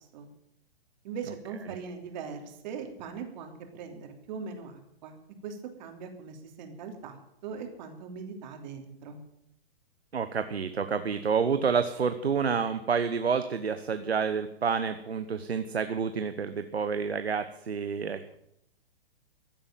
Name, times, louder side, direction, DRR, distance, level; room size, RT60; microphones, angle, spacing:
voice 1, 1.0-5.2 5.4-9.2, right 6 dB, 45° right, 4 dB, 3.3 m, -40 dB
voice 2, 10.1-18.3, right 6 dB, 90° right, 10 dB, 1.1 m, -29 dB
15.5 x 8.9 x 9.2 m, 0.77 s
hypercardioid pair, 125°, 31 cm